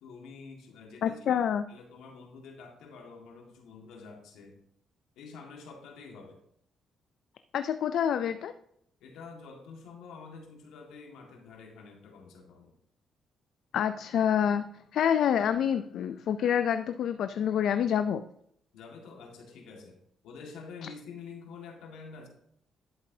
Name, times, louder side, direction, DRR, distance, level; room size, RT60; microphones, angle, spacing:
voice 1, 0.0-4.6 5.1-6.4 9.0-12.8 18.7-22.3, left 4 dB, 85° left, 2 dB, 1.7 m, -48 dB
voice 2, 1.0-1.6 7.5-8.5 13.7-14.6 14.9-18.2, left 8 dB, 70° left, 10 dB, 0.4 m, -27 dB
11.0 x 8.1 x 2.7 m, 0.70 s
cardioid pair, 90°, 0 cm